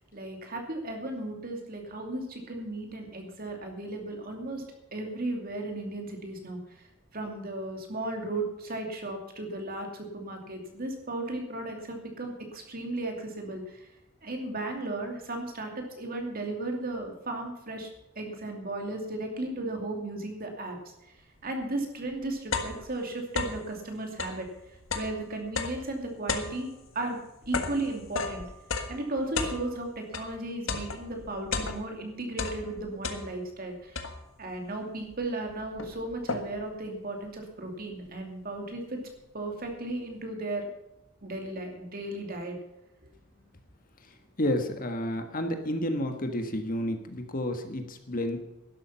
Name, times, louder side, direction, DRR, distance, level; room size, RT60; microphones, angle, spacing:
voice 1, 0.1-4.6 4.9-6.8 7.1-13.9 14.2-17.9 18.2-20.9 21.4-24.5 24.9-27.2 27.5-28.4 28.9-34.0 34.4-39.1 39.3-40.7 41.2-42.6, right 2 dB, 50° right, 3 dB, 2.6 m, -35 dB
sound 1, 21.6-21.7 22.1-23.7 24.1-30.3 30.7-32.0 32.3-33.6 34.0-34.5 35.1-35.2 35.5-36.7, left 4 dB, 80° left, 1.6 m, -34 dB
voice 2, 44.4-48.4, left 1 dB, 45° left, 6 dB, 1.6 m, -30 dB
12.0 x 11.5 x 5.8 m, 0.89 s
head